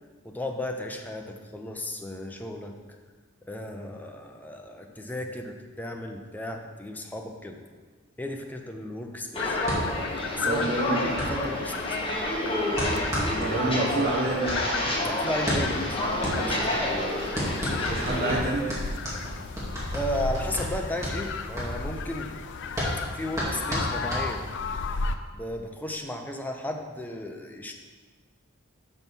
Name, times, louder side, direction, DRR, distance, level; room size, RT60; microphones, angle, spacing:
voice 1, 0.2-2.8 3.4-7.6 8.2-9.6 10.3-12.0 15.0-16.0 16.3-17.1 19.5-19.6 19.9-22.3 23.1-24.5 25.3-27.7, left 1 dB, 10° left, 3 dB, 0.6 m, -35 dB
Walk footsteps, 9.3-18.4, left 1 dB, 25° left, 1.2 m, -29 dB
sound 1, 9.4-25.2, left 4 dB, 60° left, 0.4 m, -35 dB
sound 2, 9.7-24.7, equal, 15° right, 2.3 m, -33 dB
voice 2, 10.4-11.0 13.4-14.6 17.9-18.7, right 2 dB, 50° right, -5 dB, 0.9 m, -27 dB
6.3 x 5.8 x 5.3 m, 1.4 s
head